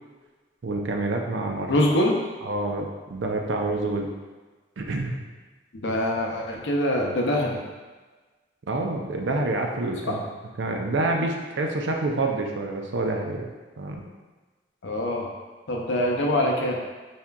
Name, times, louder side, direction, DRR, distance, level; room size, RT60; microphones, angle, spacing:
voice 1, 0.6-1.7 2.4-4.1 4.8-5.2 8.7-10.2 10.6-13.5 13.8-14.0, right 2 dB, 90° right, 2 dB, 0.5 m, -27 dB
voice 2, 1.7-2.2 5.8-7.6 10.0-10.2 14.8-15.3 15.7-16.8, left 1 dB, 85° left, -1 dB, 0.7 m, -24 dB
4.2 x 3.6 x 2.2 m, 1.3 s
head